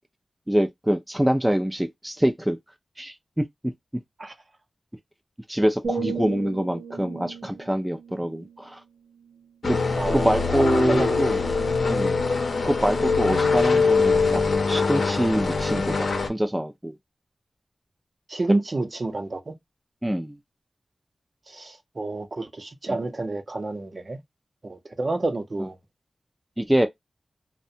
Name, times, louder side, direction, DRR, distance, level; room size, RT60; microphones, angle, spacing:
voice 1, 0.5-2.6 3.0-3.7 5.5-8.8 9.6-11.4 11.9-12.2 12.6-14.4 14.7-16.9 20.0-20.4 22.9-23.0 25.6-25.7 26.6-26.9, equal, 10° right, 0.4 m, -25 dB
sound 1, 5.8-9.7 10.2-10.5, right 5 dB, 85° right, 0.7 m, -36 dB
sound 2, 9.6-16.3, left 4 dB, 85° left, 0.6 m, -23 dB
voice 2, 10.0-10.4 10.9-11.3 18.3-19.5 21.5-24.2 24.6-25.8, right 2 dB, 50° right, 0.6 m, -29 dB
2.4 x 2.1 x 2.7 m
cardioid pair, 55°, 0 cm